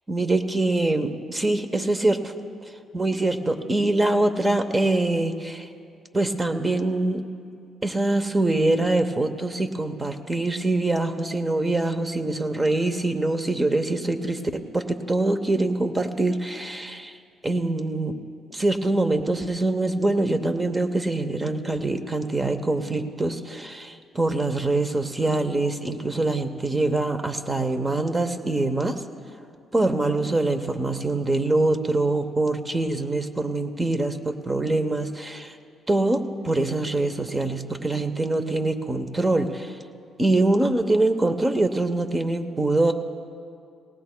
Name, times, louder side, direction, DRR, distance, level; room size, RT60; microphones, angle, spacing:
voice 1, 0.1-2.3 2.9-5.7 6.1-7.2 7.8-17.2 17.4-18.2 18.5-29.0 29.7-35.5 35.9-39.7 40.2-42.9, right 2 dB, 20° right, 8 dB, 0.8 m, -24 dB
19.0 x 18.0 x 2.2 m, 2.4 s
cardioid pair, 90°, 0 cm